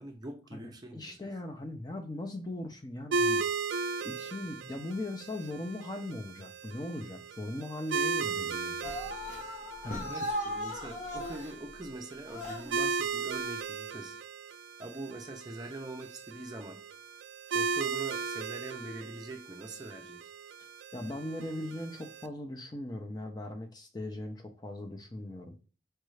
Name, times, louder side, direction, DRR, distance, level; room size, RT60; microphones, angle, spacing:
voice 1, 0.0-1.3 10.0-14.2 14.8-16.8 17.5-20.2, right 2 dB, 25° right, 4 dB, 0.6 m, -43 dB
voice 2, 0.9-3.5 4.0-9.0 9.8-10.2 20.9-25.6, left 1 dB, 25° left, 4 dB, 0.5 m, -39 dB
sound 1, 3.1-22.3, right 4 dB, 90° right, 0.3 m, -36 dB
sound 2, 8.8-11.5 12.2-12.8, left 1 dB, 45° left, 1.0 m, -37 dB
4.5 x 2.6 x 3.2 m, 0.35 s
head